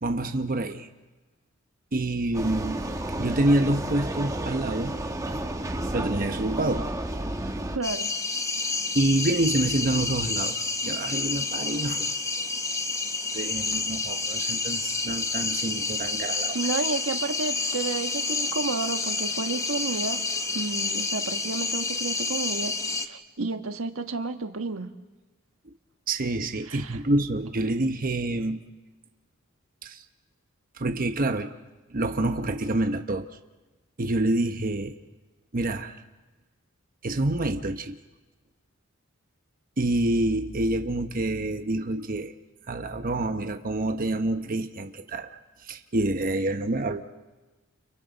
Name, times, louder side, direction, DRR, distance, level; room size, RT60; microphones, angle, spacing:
voice 1, 0.0-0.9 1.9-2.8 3.2-4.9 5.9-6.8 8.9-10.6 10.8-12.1 13.3-16.6 26.1-28.6 29.8-30.0 30.8-31.5 31.9-33.3 34.0-34.9 35.5-36.0 37.0-38.0 39.8-42.3 42.6-47.0, right 2 dB, 45° right, 6 dB, 1.0 m, -27 dB
Vehicle, 2.3-7.8, right 1 dB, 15° right, 1.2 m, -31 dB
voice 2, 7.7-8.1 16.5-20.2 20.5-24.9 26.7-27.0, right 3 dB, 90° right, 7 dB, 1.3 m, -31 dB
sound 1, 7.8-23.1, left 3 dB, 15° left, 1.0 m, -29 dB
30.0 x 30.0 x 4.1 m, 1.2 s
head